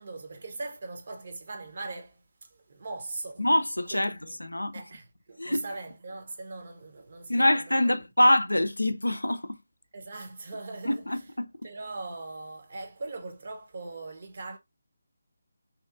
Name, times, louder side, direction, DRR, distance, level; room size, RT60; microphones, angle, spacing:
voice 1, 0.0-3.5 3.9-4.4 4.7-7.9 9.9-11.3 11.6-14.6, right 3 dB, 45° right, 0.6 m, -40 dB
voice 2, 3.4-4.1 4.4-4.8 5.4-5.6 7.3-9.6 10.8-11.5, left 1 dB, 80° left, 0.3 m, -25 dB
2.8 x 2.3 x 2.4 m
figure-of-eight pair, 155°, 0 cm